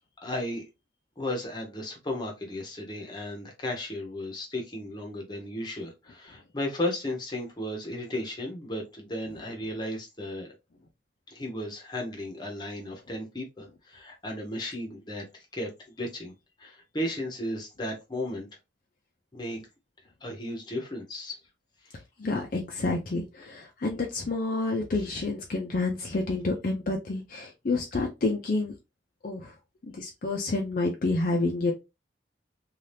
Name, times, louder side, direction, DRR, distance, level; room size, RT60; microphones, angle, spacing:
voice 1, 0.2-0.6 1.2-10.5 11.3-15.7 16.0-16.3 16.6-18.5 19.3-19.6 20.2-21.4, left 1 dB, 25° left, 0.8 m, -34 dB
voice 2, 22.2-28.8 29.2-29.5 29.9-31.7, left 3 dB, 45° left, 0.5 m, -29 dB
2.7 x 2.4 x 3.3 m
head